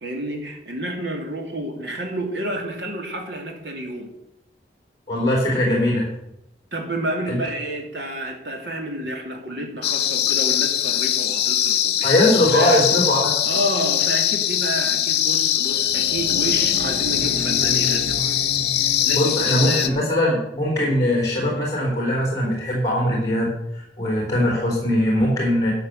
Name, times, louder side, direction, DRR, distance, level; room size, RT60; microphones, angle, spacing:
voice 1, 0.0-4.1 6.7-12.1 12.5-12.8 13.5-18.4 19.0-20.1, right 1 dB, 75° right, 2 dB, 2.7 m, -29 dB
voice 2, 5.1-6.1 7.3-7.4 12.0-13.3 19.1-25.7, left 1 dB, 20° left, -1 dB, 3.6 m, -21 dB
sound 1, 9.8-19.9, left 11 dB, 60° left, 0.9 m, -22 dB
sound 2, 15.5-20.2, equal, 45° right, 2.9 m, -33 dB
12.5 x 6.5 x 6.6 m, 0.82 s
head